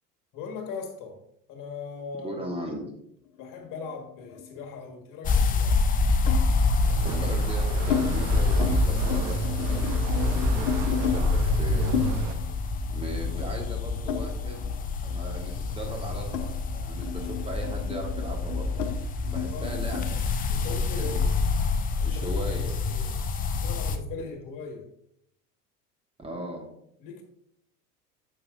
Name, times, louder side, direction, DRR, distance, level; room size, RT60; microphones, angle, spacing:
voice 1, 0.3-1.2 1.5-2.4 2.7-2.8 3.4-5.8 19.4-19.8 20.5-21.2 22.0-22.3 22.9-23.2 23.6-24.9 27.0-27.2, left 5 dB, 40° left, 4 dB, 1.7 m, -39 dB
voice 2, 2.2-2.9 7.0-12.0 12.9-14.7 15.0-18.7 19.3-20.1 20.7-21.2 22.0-22.7 26.2-26.7, right 1 dB, 10° right, 1 dB, 1.4 m, -38 dB
sound 1, 3.4-5.0 6.3-6.5 7.2-8.0 8.4-8.7 9.0-11.2 11.9-14.8 15.1-20.1, left 9 dB, 70° left, 0.9 m, -33 dB
sound 2, 5.2-24.0, left 4 dB, 20° left, 0.5 m, -27 dB
sound 3, 6.8-12.4, right 6 dB, 45° right, 0.9 m, -32 dB
9.5 x 6.9 x 2.6 m, 0.73 s
figure-of-eight pair, 80°, 48 cm